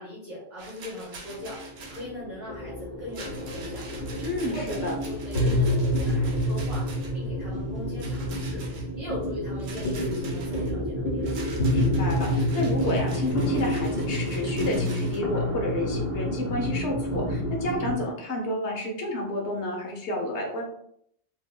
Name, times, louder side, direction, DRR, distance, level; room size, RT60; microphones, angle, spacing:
voice 1, 0.0-4.0 4.5-8.6 9.0-11.3, left 1 dB, 45° right, -10 dB, 1.3 m, -39 dB
Rattle, 0.6-2.1 3.1-7.3 8.0-8.9 9.6-10.7 11.2-15.2, right 3 dB, 75° right, 1.0 m, -45 dB
sound 1, 1.2-18.0, equal, 90° left, 1.8 m, -28 dB
voice 2, 4.2-4.9 11.4-20.6, left 1 dB, 70° left, 0 dB, 1.2 m, -30 dB
4.3 x 2.6 x 2.2 m, 0.69 s
omnidirectional pair, 1.2 m